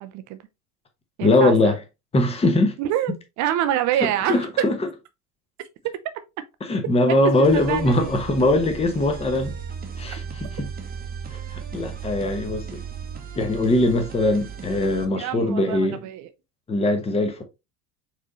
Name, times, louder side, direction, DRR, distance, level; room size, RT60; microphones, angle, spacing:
voice 1, 0.0-0.4 1.2-1.7 2.8-4.4 7.2-8.1 15.2-16.3, right 12 dB, 40° right, 0.8 m, -26 dB
voice 2, 1.2-1.8 2.1-2.8 4.0-4.8 6.6-9.5 10.0-10.7 11.3-12.8 13.3-16.0 16.7-17.4, left 2 dB, 15° left, 1.1 m, -21 dB
sound 1, 7.4-15.0, right 6 dB, 20° right, 1.1 m, -36 dB
4.8 x 3.6 x 3.0 m
figure-of-eight pair, 70°, 44 cm